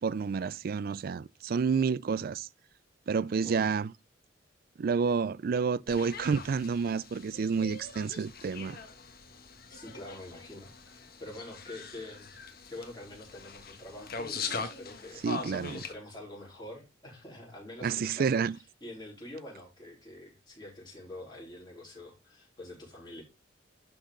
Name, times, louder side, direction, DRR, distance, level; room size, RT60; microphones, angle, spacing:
voice 1, 0.0-2.5 3.1-3.9 4.8-8.8 15.2-15.8 17.8-18.6, right 5 dB, 50° right, 0.3 m, -29 dB
sound 1, 5.9-15.9, left 4 dB, 50° left, 1.2 m, -42 dB
voice 2, 9.7-12.4 12.7-23.2, left 1 dB, 25° left, 3.9 m, -46 dB
11.5 x 4.0 x 3.9 m
head